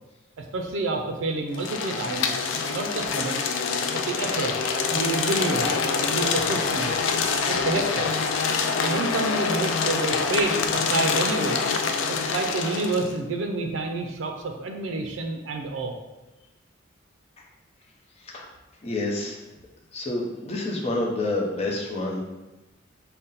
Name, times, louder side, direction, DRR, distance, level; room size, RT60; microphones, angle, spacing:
voice 1, 0.4-2.3 2.7-3.4 3.9-5.8 6.1-7.0 7.5-8.1 8.8-11.6 12.1-15.9, right 3 dB, 85° right, 3 dB, 0.4 m, -29 dB
sound 1, 1.5-13.1, left 5 dB, 90° left, 0.4 m, -26 dB
voice 2, 18.8-19.4 19.9-22.2, left 2 dB, 35° left, -2 dB, 0.6 m, -28 dB
3.9 x 2.1 x 3.9 m, 1.0 s
head